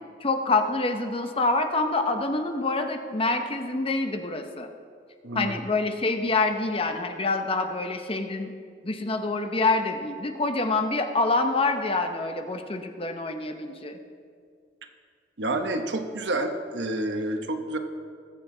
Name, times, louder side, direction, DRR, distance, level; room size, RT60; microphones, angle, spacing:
voice 1, 0.2-4.7 5.3-8.5 8.8-14.0, left 3 dB, 30° left, 6 dB, 0.8 m, -26 dB
voice 2, 15.4-17.8, right 2 dB, 75° right, 6 dB, 1.0 m, -29 dB
19.5 x 7.7 x 3.8 m, 2.2 s
head